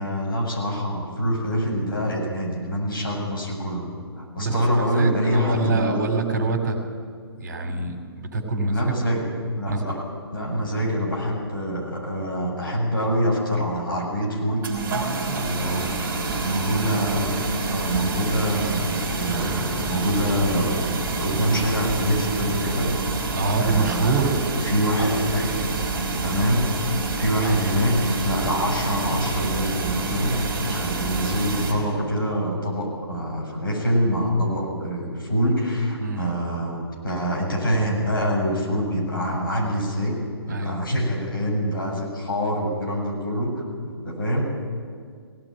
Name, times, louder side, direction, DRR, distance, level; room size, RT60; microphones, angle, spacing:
voice 1, 0.0-3.8 4.2-6.0 8.7-9.2 9.6-10.0 10.3-14.7 15.5-23.0 23.6-25.5 26.2-26.7 27.1-40.2 40.5-44.5, equal, 55° left, -1 dB, 7.7 m, -25 dB
voice 2, 4.4-6.8 7.4-8.9 9.7-10.0 15.3-16.1 23.3-24.4 36.0-36.4 40.5-40.8, right 3 dB, 45° right, 5 dB, 3.1 m, -26 dB
sound 1, 14.6-31.7, right 3 dB, 15° right, 3.5 m, -27 dB
18.5 x 18.0 x 8.9 m, 2.1 s
figure-of-eight pair, 135°, 14 cm